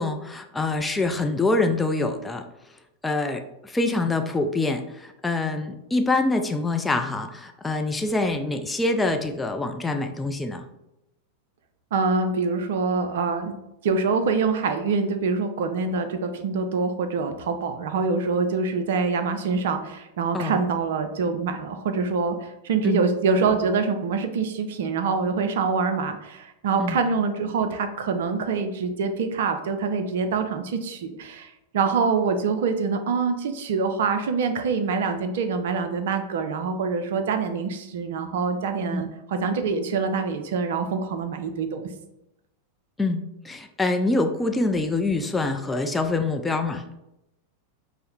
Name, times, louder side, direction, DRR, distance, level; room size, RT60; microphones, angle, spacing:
voice 1, 0.0-2.4 3.0-10.7 20.3-20.6 22.8-23.0 26.8-27.0 38.9-39.0 43.0-46.8, left 2 dB, 10° left, 5 dB, 0.3 m, -25 dB
voice 2, 11.9-13.6 13.8-41.9, right 4 dB, 55° right, 8 dB, 0.4 m, -25 dB
5.5 x 2.0 x 2.9 m, 0.86 s
figure-of-eight pair, 90°, 0 cm